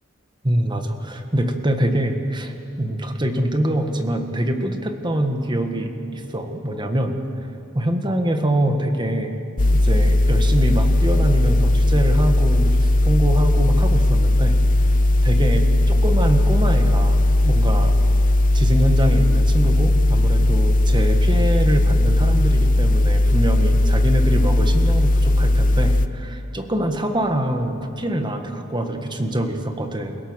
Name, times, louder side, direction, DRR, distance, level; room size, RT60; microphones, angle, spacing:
voice 1, 0.4-7.2 7.8-9.3 9.7-14.6 15.2-18.0 18.5-30.2, right 1 dB, 25° right, 5 dB, 1.7 m, -24 dB
sound 1, 9.6-26.1, left 1 dB, 40° left, 0.7 m, -17 dB
29.0 x 17.0 x 6.5 m, 2.7 s
head